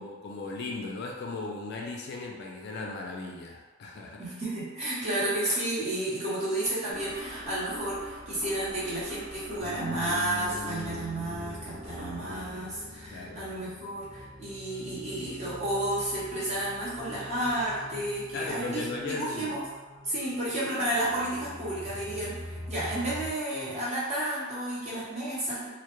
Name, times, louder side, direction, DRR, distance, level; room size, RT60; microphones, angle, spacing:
voice 1, 0.0-4.3 13.1-13.5 18.3-19.5, left 3 dB, 50° left, 0 dB, 0.3 m, -37 dB
voice 2, 4.2-19.6 20.0-25.7, right 1 dB, 30° right, -9 dB, 0.8 m, -32 dB
sound 1, 6.9-13.9, equal, 55° right, 1.2 m, -45 dB
sound 2, 9.6-23.3, left 1 dB, ahead, 0.7 m, -44 dB
2.1 x 2.1 x 2.9 m, 1.2 s
head